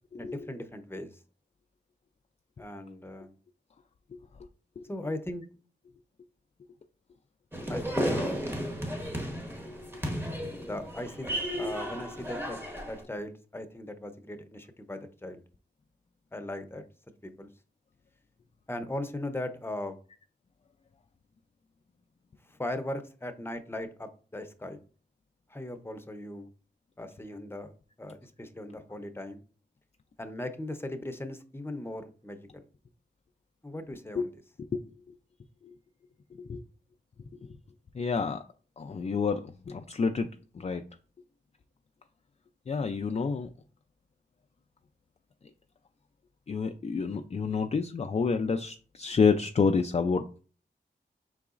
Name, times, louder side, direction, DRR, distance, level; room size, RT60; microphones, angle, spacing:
voice 1, 0.1-1.2 2.6-3.3 4.9-5.5 7.7-8.4 10.7-12.6 12.9-15.4 16.3-16.8 17.2-17.5 18.7-20.0 22.4-24.8 25.5-26.5 27.0-29.4 30.2-32.6 33.6-34.3, left 1 dB, 10° left, 8 dB, 0.7 m, -38 dB
sound 1, 7.5-13.0, equal, 10° right, 1.0 m, -33 dB
voice 2, 37.9-38.4 38.8-40.8 42.7-43.5 46.5-50.4, left 5 dB, 35° left, 6 dB, 0.4 m, -29 dB
4.7 x 3.8 x 2.4 m, 0.39 s
cardioid pair, 40°, 19 cm